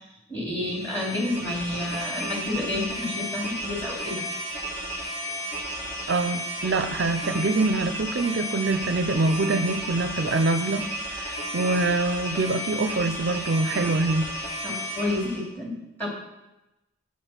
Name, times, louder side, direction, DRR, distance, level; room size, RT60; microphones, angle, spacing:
voice 1, 0.3-4.2 14.6-16.1, left 2 dB, 10° left, -4 dB, 2.6 m, -30 dB
sound 1, 0.7-15.5, equal, 45° left, 2.8 m, -33 dB
voice 2, 6.1-14.3, right 2 dB, 55° right, 9 dB, 0.5 m, -25 dB
8.5 x 7.4 x 5.8 m, 0.94 s
head